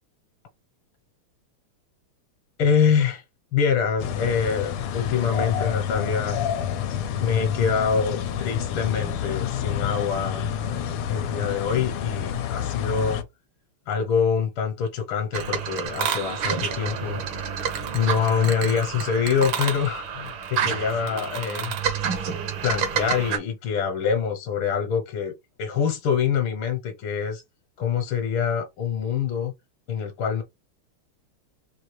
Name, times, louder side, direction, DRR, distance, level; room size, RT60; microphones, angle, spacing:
voice 1, 2.6-3.2 3.5-6.4 7.2-13.2 13.9-17.2 17.9-21.7 22.6-25.3 25.6-27.4 27.8-29.5 29.9-30.4, left 7 dB, 70° left, 1.7 m, -25 dB
sound 1, 4.0-13.2, left 9 dB, 85° left, 1.6 m, -28 dB
sound 2, 15.3-23.4, right 7 dB, 70° right, 1.7 m, -29 dB
4.6 x 2.7 x 3.2 m
omnidirectional pair, 2.4 m